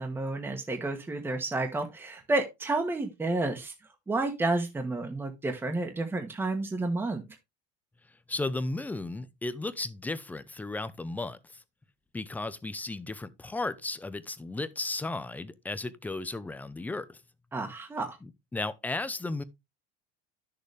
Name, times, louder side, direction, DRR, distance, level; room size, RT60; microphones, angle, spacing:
voice 1, 0.0-3.7 4.1-7.2 17.5-18.2, right 2 dB, 10° right, 1.2 m, -30 dB
voice 2, 8.3-11.4 12.1-17.2 18.2-19.4, left 2 dB, 10° left, 0.6 m, -34 dB
11.5 x 6.7 x 3.4 m
cardioid pair, 150°, 20 cm